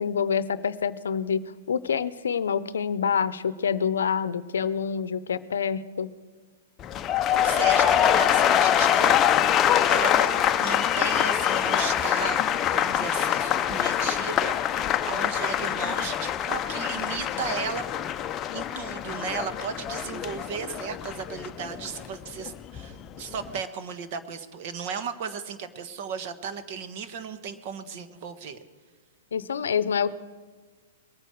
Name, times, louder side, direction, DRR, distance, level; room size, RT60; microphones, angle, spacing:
voice 1, 0.0-6.1 29.3-30.1, left 7 dB, 80° left, 16 dB, 0.7 m, -27 dB
sound 1, 6.8-22.9 23.2-23.6, left 10 dB, 25° left, 0.6 m, -24 dB
voice 2, 7.3-9.1 9.5-17.8 18.2-28.6, right 6 dB, 50° right, 9 dB, 1.3 m, -35 dB
22.0 x 9.2 x 4.7 m, 1.4 s
hypercardioid pair, 130°, 0 cm